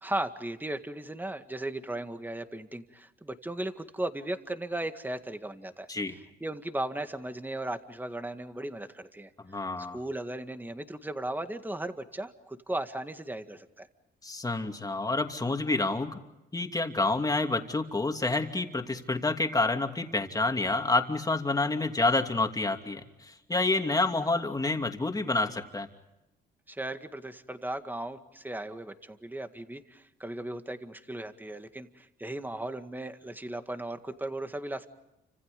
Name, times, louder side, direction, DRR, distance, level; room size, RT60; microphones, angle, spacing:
voice 1, 0.0-9.3 9.8-13.9 26.7-34.9, right 1 dB, 10° right, 8 dB, 1.9 m, -36 dB
voice 2, 9.4-10.0 14.2-16.2 16.5-25.9, left 3 dB, 20° left, 5 dB, 2.9 m, -28 dB
30.0 x 26.5 x 5.3 m, 0.95 s
cardioid pair, 90°, 20 cm